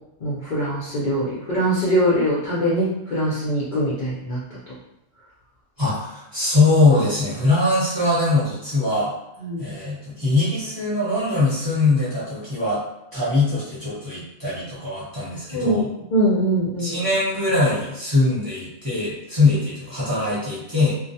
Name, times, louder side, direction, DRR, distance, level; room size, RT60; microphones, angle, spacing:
voice 1, 0.2-4.4 4.7-4.8 9.4-9.6 15.5-15.9 16.1-17.0, right 1 dB, 55° left, -7 dB, 0.5 m, -22 dB
voice 2, 5.8-9.1 9.6-12.8 13.1-15.9 16.8-20.9, left 2 dB, 20° right, -10 dB, 0.8 m, -21 dB
2.3 x 2.1 x 2.7 m, 0.88 s
omnidirectional pair, 1.3 m